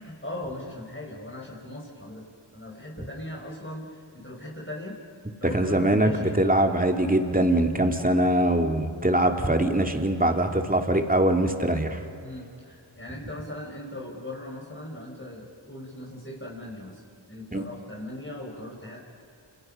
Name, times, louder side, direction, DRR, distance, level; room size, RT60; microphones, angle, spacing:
voice 1, 0.0-2.3 2.5-5.0 5.4-6.4 12.2-17.0 17.3-19.0, left 1 dB, 25° left, -2 dB, 4.9 m, -39 dB
voice 2, 5.4-12.0 17.5-17.6, right 1 dB, 15° right, 4 dB, 2.5 m, -23 dB
29.0 x 28.5 x 5.6 m, 2.5 s
wide cardioid pair, 50°, 49 cm